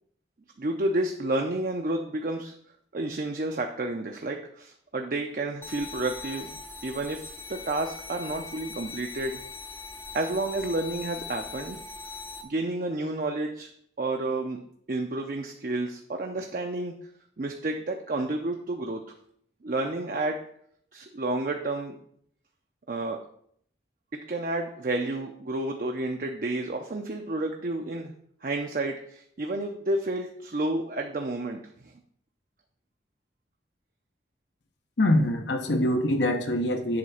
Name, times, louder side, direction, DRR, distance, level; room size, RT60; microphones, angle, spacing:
voice 1, 0.6-2.5 2.9-9.4 10.1-11.8 12.4-13.7 14.0-14.6 14.9-17.0 17.4-19.0 19.6-20.4 20.9-22.0 22.9-23.2 24.3-28.1 28.4-31.9, right 2 dB, 50° right, 3 dB, 0.5 m, -30 dB
sound 1, 5.6-12.4, left 4 dB, 10° left, 0.5 m, -41 dB
voice 2, 35.0-37.0, left 1 dB, 85° left, 5 dB, 0.9 m, -24 dB
7.7 x 3.4 x 5.6 m, 0.66 s
head